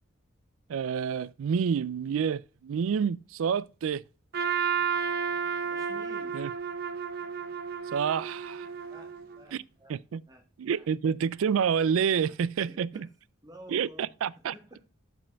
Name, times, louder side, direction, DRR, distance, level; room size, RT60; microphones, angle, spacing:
voice 1, 0.7-4.0 6.3-6.5 7.9-8.7 9.5-9.6 9.9-10.2 10.6-13.1 13.7-14.5, right 7 dB, 75° right, 0.3 m, -28 dB
Trumpet, 4.3-9.4, right 6 dB, 50° right, 0.7 m, -32 dB
voice 2, 5.7-6.4 8.9-9.9 10.3-10.4 10.7-10.9 12.3-13.1 13.4-14.1 14.5-14.8, equal, 20° right, 1.9 m, -51 dB
7.5 x 5.3 x 4.5 m
head